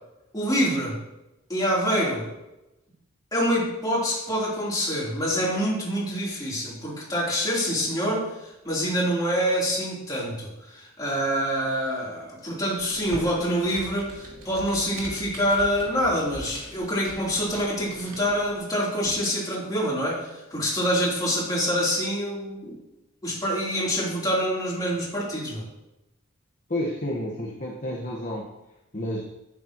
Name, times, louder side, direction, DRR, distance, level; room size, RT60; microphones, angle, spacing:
voice 1, 0.3-1.0 1.5-2.3 3.3-22.8 23.2-25.6, equal, 20° left, -6 dB, 3.4 m, -26 dB
Computer keyboard, 12.8-18.6, equal, 85° right, 2.5 m, -42 dB
voice 2, 26.7-28.4 28.9-29.2, left 1 dB, 35° left, -3 dB, 1.3 m, -30 dB
11.0 x 9.1 x 3.0 m, 0.95 s
head